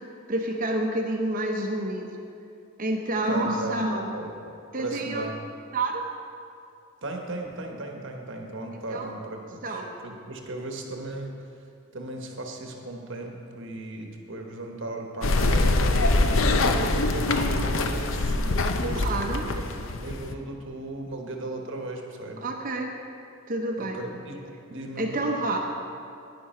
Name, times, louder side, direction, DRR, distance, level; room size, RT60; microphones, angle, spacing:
voice 1, 0.3-2.1 2.8-4.1 4.7-5.3 5.7-6.0 8.9-9.1 9.6-9.9 19.0-19.5 22.4-23.0 23.5-24.0 25.0-25.6, right 2 dB, 40° right, 2 dB, 0.8 m, -28 dB
voice 2, 3.2-4.3 4.8-5.4 7.0-11.4 11.9-15.9 16.3-19.5 20.0-22.5 23.8-24.4 24.7-25.3, right 2 dB, 60° right, 2 dB, 1.1 m, -36 dB
sound 1, 15.2-20.3, left 2 dB, 65° left, 0.6 m, -24 dB
10.5 x 9.7 x 4.4 m, 2.5 s
head